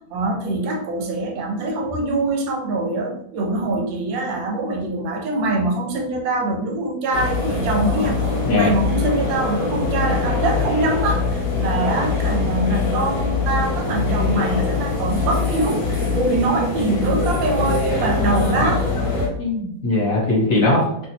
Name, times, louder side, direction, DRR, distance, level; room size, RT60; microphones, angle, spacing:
voice 1, 0.1-8.2 8.5-19.0, right 2 dB, 85° right, 2 dB, 1.3 m, -23 dB
sound 1, 7.1-19.3, left 4 dB, 75° left, 0.5 m, -23 dB
voice 2, 19.4-21.1, left 2 dB, 60° left, -4 dB, 1.0 m, -20 dB
2.8 x 2.5 x 2.8 m, 0.71 s
omnidirectional pair, 2.0 m